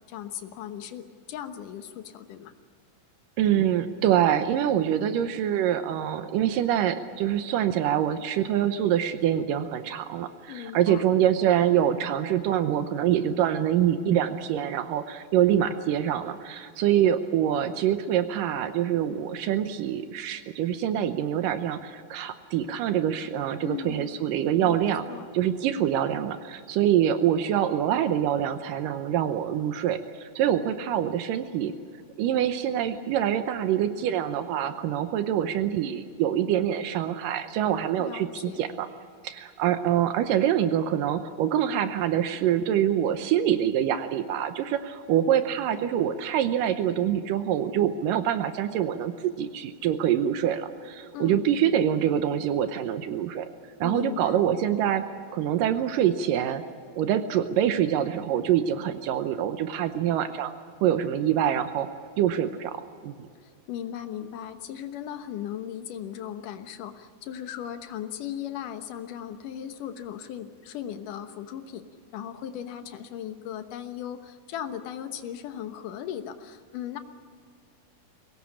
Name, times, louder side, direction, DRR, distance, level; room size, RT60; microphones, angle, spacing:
voice 1, 0.1-2.5 10.5-11.1 23.6-24.1 24.5-25.3 38.0-38.7 51.1-51.4 53.8-54.4 63.4-71.9 72.1-77.0, left 10 dB, 75° left, 8 dB, 2.7 m, -37 dB
voice 2, 3.4-25.1 25.3-31.7 32.2-38.9 39.2-53.5 53.8-55.0 55.3-56.6 57.0-60.5 60.8-61.9 62.2-63.2, right 10 dB, 80° right, 9 dB, 2.5 m, -25 dB
23.0 x 18.5 x 8.6 m, 2.2 s
omnidirectional pair, 3.9 m